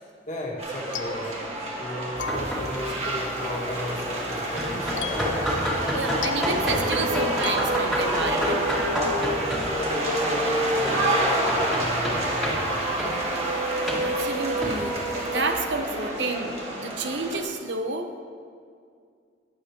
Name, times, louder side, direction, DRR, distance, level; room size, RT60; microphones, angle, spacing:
voice 1, 0.3-1.4 1.8-5.4 9.6-12.8, left 1 dB, 45° left, -2 dB, 1.8 m, -35 dB
sound 1, 0.6-17.4, right 1 dB, 35° right, 1.8 m, -28 dB
sound 2, 0.7-1.9 2.2-3.1 5.0-8.4, left 4 dB, 85° left, 0.7 m, -36 dB
sound 3, 2.2-15.5, equal, ahead, 2.1 m, -31 dB
voice 2, 5.9-8.7 14.0-18.2, right 3 dB, 75° right, 5 dB, 0.9 m, -30 dB
20.0 x 7.6 x 2.9 m, 2.2 s
head